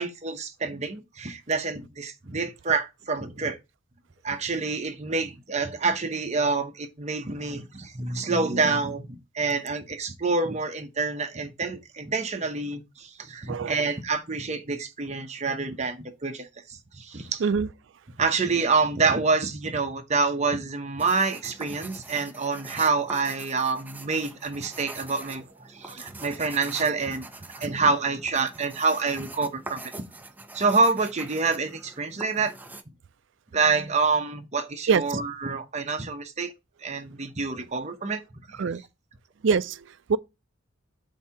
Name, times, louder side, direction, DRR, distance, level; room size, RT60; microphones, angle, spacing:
voice 1, 0.0-3.6 4.2-17.4 18.2-27.3 27.5-29.8 30.5-32.5 33.5-36.5 36.8-38.6, right 4 dB, 35° right, 0.9 m, -27 dB
voice 2, 13.5-13.8 17.4-17.7 34.9-35.0 38.6-38.8 39.4-40.2, right 5 dB, 65° right, 0.4 m, -24 dB
sound 1, 21.0-32.8, right 2 dB, 10° right, 0.5 m, -43 dB
7.9 x 2.8 x 5.7 m
head